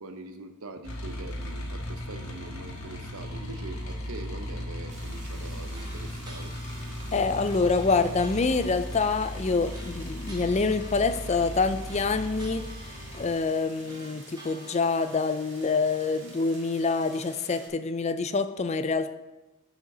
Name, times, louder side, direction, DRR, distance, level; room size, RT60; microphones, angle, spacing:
voice 1, 0.0-6.5, right 3 dB, 75° right, 8 dB, 0.8 m, -43 dB
sound 1, 0.8-13.3, left 1 dB, 90° left, 1.5 m, -37 dB
sound 2, 4.9-17.7, right 2 dB, 55° right, 2.0 m, -50 dB
sound 3, 5.5-15.0, right 1 dB, 20° right, 1.6 m, -50 dB
voice 2, 7.1-12.6 13.1-19.2, left 4 dB, 30° left, 11 dB, 0.4 m, -26 dB
6.6 x 5.1 x 6.0 m, 1.0 s
head